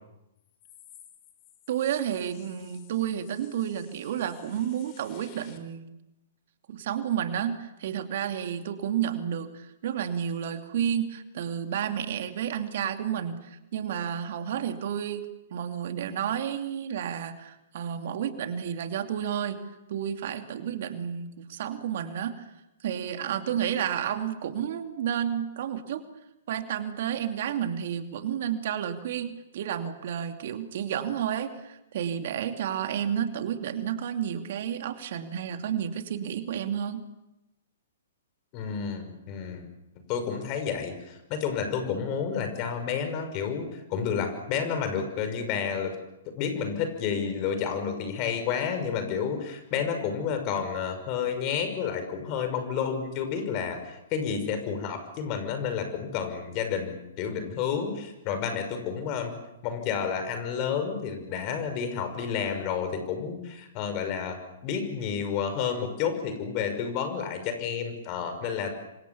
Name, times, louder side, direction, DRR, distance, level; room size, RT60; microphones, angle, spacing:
voice 1, 1.7-5.9 6.7-15.2 15.5-19.6 19.9-22.5 22.8-26.0 26.5-37.0, right 9 dB, 55° right, 7 dB, 2.6 m, -31 dB
voice 2, 38.5-39.6 40.1-45.9 46.4-59.3 59.6-68.7, left 7 dB, 35° left, 8 dB, 5.9 m, -30 dB
28.5 x 25.5 x 7.2 m, 0.90 s
figure-of-eight pair, 115°, 0 cm